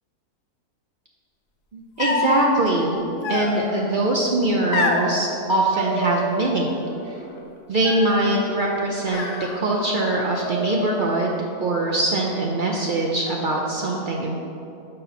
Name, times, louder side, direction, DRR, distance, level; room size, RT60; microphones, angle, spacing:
voice 1, 1.7-3.0 3.3-6.8 7.1-7.2 7.7-9.3 9.5-14.4, right 2 dB, 70° right, -2 dB, 0.4 m, -22 dB
sound 1, 2.0-2.4 3.2-3.9 4.7-5.1 5.7-6.6 6.8-7.4 7.8-8.4 9.1-10.0 10.3-11.1, left 3 dB, 90° left, 1.4 m, -27 dB
6.6 x 5.4 x 5.8 m, 2.8 s
omnidirectional pair, 1.7 m